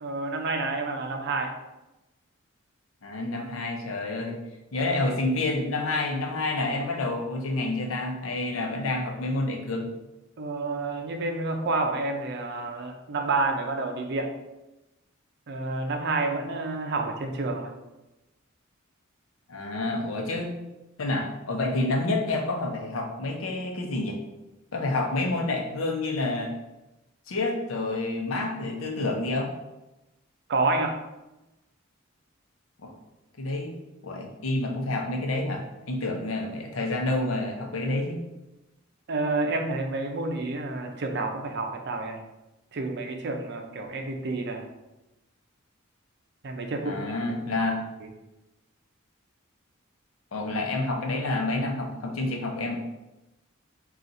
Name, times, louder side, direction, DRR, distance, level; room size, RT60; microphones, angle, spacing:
voice 1, 0.0-1.6 10.4-14.3 15.5-17.7 30.5-31.0 39.1-42.2 42.7-44.7 46.4-47.0, right 3 dB, 55° right, 4 dB, 0.5 m, -29 dB
voice 2, 3.0-4.4 4.7-9.9 19.5-20.6 21.0-24.2 24.7-26.5 27.3-29.5 32.8-32.9 33.4-33.8 34.0-38.2 46.8-47.8 50.3-52.7, left 2 dB, 80° left, 2 dB, 0.7 m, -28 dB
4.1 x 2.4 x 3.8 m, 0.99 s
head